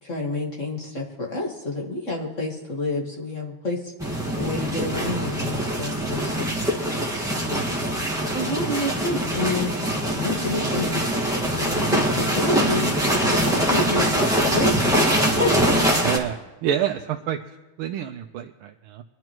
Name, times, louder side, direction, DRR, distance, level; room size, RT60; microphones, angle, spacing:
voice 1, 0.0-6.6 8.3-9.7 10.1-11.0 11.5-12.9 13.3-14.1 14.4-14.9 15.4-15.5, left 2 dB, 35° left, -3 dB, 1.9 m, -29 dB
sound 1, 4.0-16.2, right 1 dB, ahead, 1.3 m, -23 dB
voice 2, 16.0-17.4 17.8-19.0, right 10 dB, 80° right, 3 dB, 1.5 m, -28 dB
24.0 x 11.0 x 3.1 m, 1.1 s
omnidirectional pair, 2.3 m